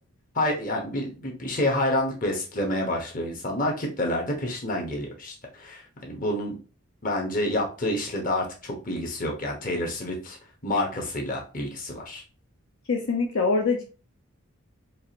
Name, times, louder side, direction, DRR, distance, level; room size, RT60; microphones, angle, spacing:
voice 1, 0.3-6.5 7.0-10.4 10.6-12.2, left 1 dB, 40° left, 0 dB, 1.1 m, -28 dB
voice 2, 12.9-13.8, left 4 dB, 65° left, 1 dB, 0.6 m, -24 dB
4.7 x 2.5 x 2.8 m, 0.34 s
head